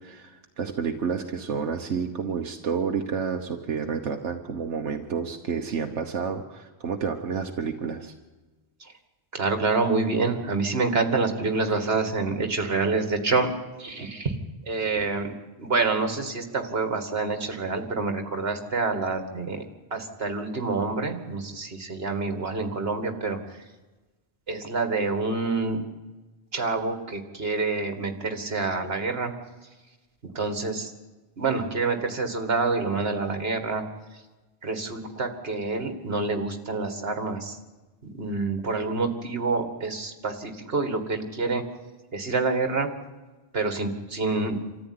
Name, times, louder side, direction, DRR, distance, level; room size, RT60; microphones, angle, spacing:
voice 1, 0.0-8.1, right 6 dB, 85° right, 4 dB, 1.4 m, -30 dB
voice 2, 9.3-13.5 13.8-14.4 14.7-15.3 15.6-19.6 19.9-23.4 24.5-25.8 26.5-29.3 30.3-30.9 31.4-33.8 34.6-37.6 38.0-41.6 42.1-42.9 43.5-44.6, right 3 dB, 60° right, 6 dB, 2.3 m, -27 dB
26.0 x 14.0 x 9.7 m, 1.2 s
omnidirectional pair, 1.2 m